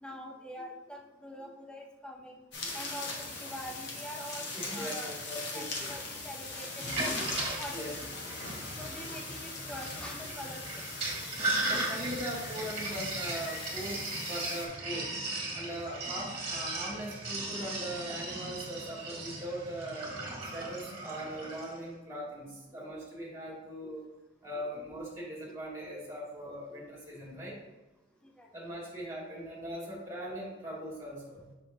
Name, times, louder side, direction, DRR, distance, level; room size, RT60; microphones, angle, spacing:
voice 1, 0.0-5.1 5.5-7.1 7.6-8.1 8.8-10.8 11.5-12.0 17.6-17.7 23.8-23.9 25.9-26.0 26.7-26.8 28.4-28.5, equal, 5° left, 1 dB, 0.5 m, -45 dB
sound 1, 2.5-14.7, left 3 dB, 60° left, 1.2 m, -40 dB
voice 2, 4.5-5.9 7.7-7.9 11.7-15.1 15.5-20.1 20.5-24.1 24.4-27.6 28.5-31.4, equal, 15° right, -5 dB, 2.2 m, -40 dB
Sink (filling or washing), 6.7-21.8, right 2 dB, 30° right, 1.7 m, -37 dB
6.9 x 5.7 x 2.7 m, 1.1 s
head